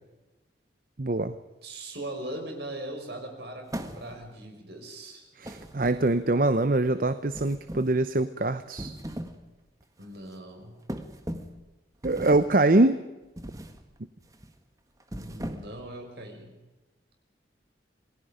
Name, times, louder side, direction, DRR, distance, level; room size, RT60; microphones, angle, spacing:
voice 1, 1.0-1.3 5.4-8.9 12.0-13.0, right 2 dB, 50° right, 12 dB, 0.8 m, -24 dB
voice 2, 1.6-5.3 10.0-10.8 15.1-16.5, right 1 dB, 65° right, 3 dB, 5.6 m, -40 dB
sound 1, 3.7-4.4 5.4-6.4 7.3-8.0 8.6-9.4 9.8-10.0 10.9-11.6 12.0-12.6 13.4-13.8 14.2-14.5 15.0-15.9, right 1 dB, 20° right, 1.6 m, -39 dB
28.0 x 20.0 x 5.1 m, 1.1 s
head